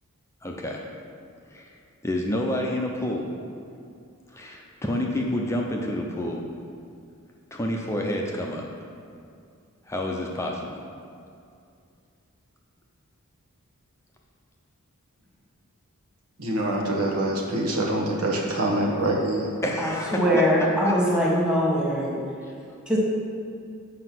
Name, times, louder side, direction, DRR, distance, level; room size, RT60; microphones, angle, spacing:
voice 1, 0.4-0.8 1.5-1.7 2.0-3.3 4.3-6.4 7.5-8.7 9.9-10.8 19.6-21.2 22.4-22.8, left 1 dB, 10° left, 0 dB, 0.6 m, -29 dB
voice 2, 16.4-19.5, right 1 dB, 85° right, -2 dB, 1.4 m, -25 dB
voice 3, 20.1-22.1 22.9-23.0, equal, 5° right, -5 dB, 1.6 m, -22 dB
7.9 x 5.1 x 6.0 m, 2.4 s
head